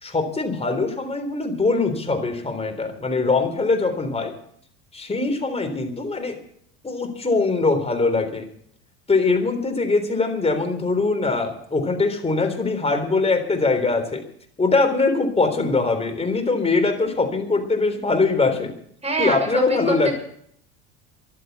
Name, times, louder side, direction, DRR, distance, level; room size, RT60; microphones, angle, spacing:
voice 1, 0.0-4.3 4.9-6.4 6.8-8.4 9.1-14.2 14.6-18.7 19.2-20.1, left 3 dB, 15° left, 5 dB, 3.8 m, -22 dB
voice 2, 19.0-20.1, right 2 dB, 20° right, 3 dB, 6.6 m, -25 dB
14.0 x 11.5 x 8.3 m, 0.66 s
hypercardioid pair, 75°, 35 cm